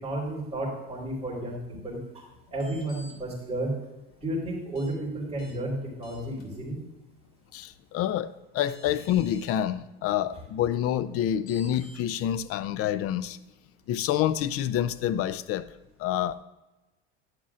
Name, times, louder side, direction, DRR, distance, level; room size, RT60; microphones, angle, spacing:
voice 1, 0.0-2.3 2.5-3.7 4.2-6.8, right 1 dB, 15° right, 3.8 m, -32 dB
sound 1, 2.5-3.1 4.8-4.9 5.4-5.5 6.0-6.4 8.1-8.2 8.6-9.5 11.5-12.0, left 1 dB, 75° left, 2.6 m, -51 dB
voice 2, 7.5-13.4 13.9-15.7 16.0-16.3, left 11 dB, 45° left, 0.6 m, -27 dB
11.0 x 11.0 x 2.5 m
supercardioid pair, 100°, 31 cm